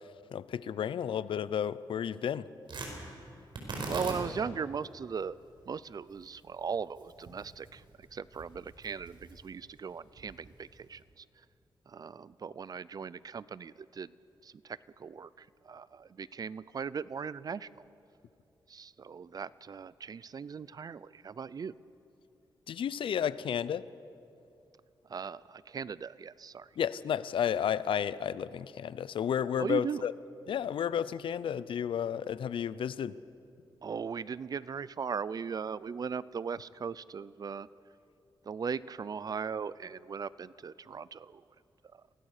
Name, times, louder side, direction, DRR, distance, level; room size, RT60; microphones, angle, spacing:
voice 1, 0.3-2.5 22.7-23.9 26.8-30.1 30.5-33.2, left 8 dB, 80° left, 0.6 m, -32 dB
Tearing, 2.6-11.0, right 2 dB, 65° right, 4.5 m, -44 dB
voice 2, 3.8-5.4 5.7-11.2 11.9-14.1 14.4-17.7 18.7-21.7 25.1-26.7 29.6-30.0 33.8-37.7 38.4-41.4 41.9-42.0, right 6 dB, 45° right, 0.5 m, -38 dB
24.0 x 18.0 x 6.6 m
cardioid pair, 100°, 9 cm